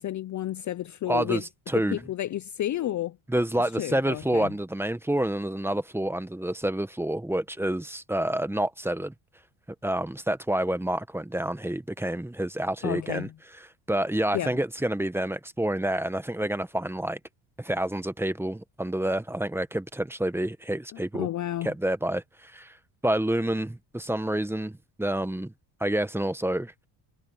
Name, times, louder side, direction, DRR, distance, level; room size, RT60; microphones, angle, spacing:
voice 1, 0.0-1.4 1.7-3.2 3.8-4.5 12.8-13.3 14.3-14.5 20.9-21.7, left 12 dB, 40° left, 0.6 m, -31 dB
voice 2, 1.1-2.0 3.3-9.1 9.8-13.3 13.9-17.2 17.6-21.3 21.6-22.8 23.0-25.5 25.8-26.7, right 1 dB, 5° right, 1.2 m, -28 dB
cardioid pair, 100°, 46 cm